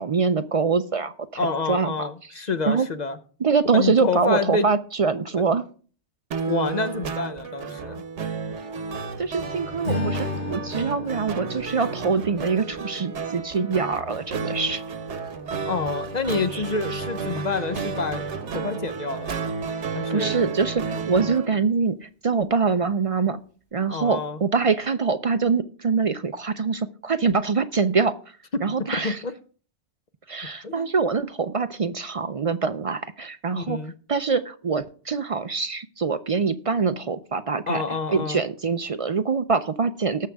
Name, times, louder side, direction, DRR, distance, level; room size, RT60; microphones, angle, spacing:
voice 1, 0.0-2.1 2.7-2.9 3.4-5.6 9.2-14.8 16.5-16.6 16.9-17.0 20.1-23.4 23.7-28.2 28.6-29.2 30.3-33.8 34.1-37.8 38.1-40.3, right 5 dB, 50° right, 10 dB, 0.4 m, -24 dB
voice 2, 1.4-3.2 3.6-4.7 6.5-8.0 15.6-18.2 18.5-19.3 19.9-20.5 23.9-24.4 28.5-28.6 29.0-29.3 30.6-30.9 33.5-33.9 37.7-38.4, left 4 dB, 45° left, 10 dB, 0.8 m, -28 dB
sound 1, 6.3-21.5, right 5 dB, 90° right, 1.3 m, -32 dB
Strum, 9.8-14.2, left 2 dB, 75° left, 4.5 m, -34 dB
18.5 x 6.5 x 3.4 m, 0.42 s
omnidirectional pair, 1.2 m